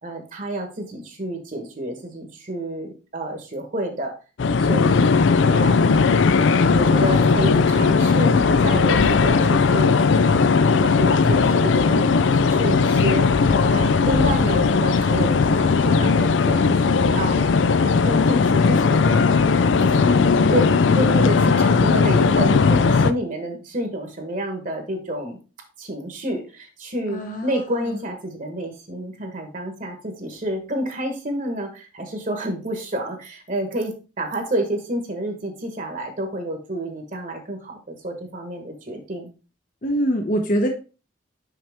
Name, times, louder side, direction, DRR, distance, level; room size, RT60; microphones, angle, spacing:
voice 1, 0.0-4.1 4.6-5.1 5.5-6.1 6.7-10.0 10.3-17.5 17.8-20.2 20.5-25.4 25.8-39.3, right 1 dB, 45° right, 4 dB, 1.3 m, -29 dB
sound 1, 4.4-23.1, left 4 dB, 75° left, 0.4 m, -18 dB
voice 2, 20.0-20.5 27.1-27.6 39.8-40.7, equal, 45° left, 4 dB, 0.9 m, -24 dB
5.9 x 5.5 x 3.4 m, 0.34 s
head